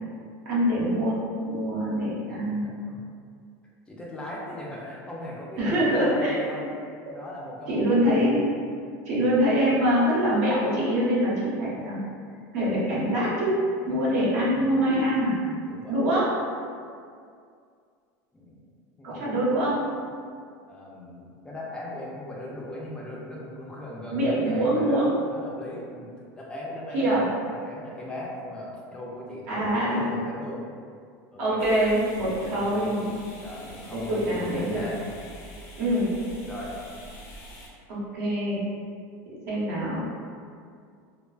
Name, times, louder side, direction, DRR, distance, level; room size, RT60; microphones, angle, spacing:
voice 1, 0.4-1.2 1.5-2.7 5.6-6.4 7.1-7.2 7.7-8.4 9.0-12.0 12.5-13.5 13.9-15.4 15.9-16.3 19.0-19.8 24.1-25.1 26.9-27.2 29.5-30.2 31.4-33.1 33.9-34.8 35.8-36.1 37.9-38.6 39.3-40.0, equal, 70° right, -8 dB, 0.8 m, -24 dB
voice 2, 3.9-6.8 7.1-8.4 13.9-14.5 15.6-16.2 18.3-18.6 19.0-19.2 20.7-26.1 26.3-27.2 27.5-30.7 31.3-31.6 32.4-32.9 33.4-35.0 36.4-36.7, left 1 dB, 10° left, -4 dB, 0.4 m, -39 dB
sound 1, 31.6-37.7, equal, 60° left, 0.6 m, -45 dB
2.3 x 2.3 x 2.3 m, 2.2 s
supercardioid pair, 130°, 9 cm